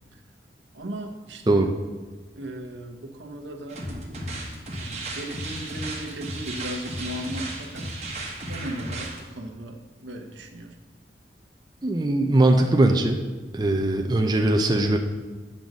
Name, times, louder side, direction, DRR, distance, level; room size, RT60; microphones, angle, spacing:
voice 1, 0.7-1.7 2.4-3.9 4.8-8.1 8.5-10.7, right 1 dB, 85° right, 4 dB, 0.9 m, -37 dB
sound 1, 3.7-9.2, right 1 dB, 40° right, 1.2 m, -34 dB
voice 2, 11.8-13.2 13.5-15.0, right 2 dB, 20° right, 3 dB, 0.5 m, -20 dB
8.7 x 3.9 x 6.1 m, 1.3 s
head